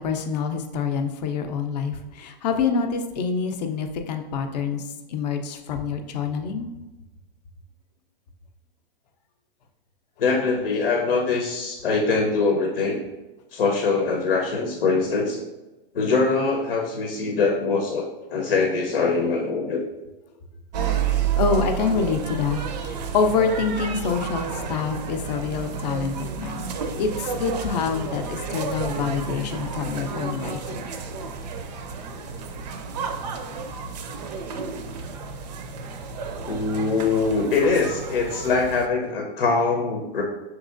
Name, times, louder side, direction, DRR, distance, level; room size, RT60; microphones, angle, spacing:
voice 1, 0.0-4.8 5.1-6.7 21.1-22.6 22.9-26.7 27.0-30.9, left 5 dB, 45° left, 6 dB, 0.5 m, -26 dB
voice 2, 10.2-13.0 13.5-15.4 15.9-19.8 36.4-40.2, left 4 dB, 85° left, 2 dB, 0.8 m, -23 dB
sound 1, 20.7-38.9, right 6 dB, 45° right, 0.5 m, -31 dB
6.2 x 3.0 x 2.5 m, 1.1 s
hypercardioid pair, 150°, 29 cm